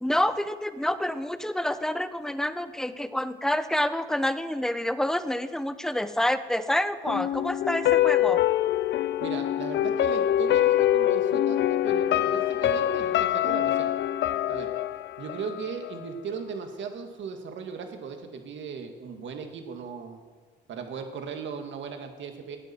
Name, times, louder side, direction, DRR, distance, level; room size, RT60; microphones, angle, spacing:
voice 1, 0.0-8.4, left 1 dB, 5° left, 12 dB, 0.7 m, -28 dB
sound 1, 7.1-16.0 16.4-16.5, left 12 dB, 65° left, 0.4 m, -25 dB
voice 2, 9.2-13.9 14.5-14.7 15.2-20.2 20.7-22.6, right 6 dB, 70° right, 5 dB, 1.7 m, -37 dB
16.0 x 9.1 x 4.3 m, 1.4 s
cardioid pair, 90°, 20 cm